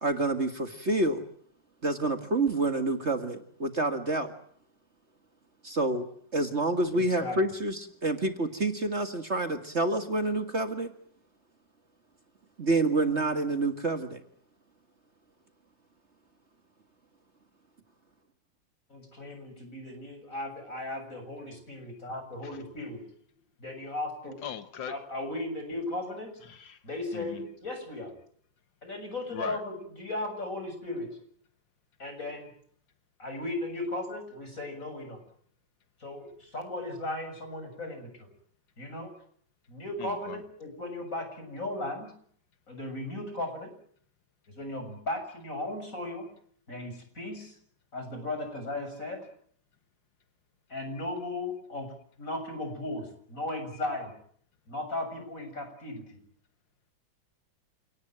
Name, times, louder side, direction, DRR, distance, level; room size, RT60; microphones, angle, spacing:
voice 1, 0.0-1.2 1.8-4.3 5.6-6.1 6.3-10.9 12.6-14.2, right 2 dB, 40° right, 7 dB, 2.0 m, -28 dB
voice 2, 6.9-7.4 18.9-23.0 23.6-24.4 24.9-26.3 26.8-28.1 28.8-31.2 32.0-32.5 33.2-35.2 36.0-38.3 38.8-39.1 39.7-42.1 42.7-43.7 44.5-46.3 46.7-47.5 47.9-49.2 50.7-54.1 54.7-56.2, left 2 dB, 45° left, 6 dB, 7.7 m, -36 dB
voice 3, 24.4-24.9 26.4-26.8 27.1-27.5 29.3-29.6 40.0-40.4, left 9 dB, 85° left, 10 dB, 2.0 m, -39 dB
29.0 x 19.0 x 9.2 m, 0.62 s
omnidirectional pair, 2.0 m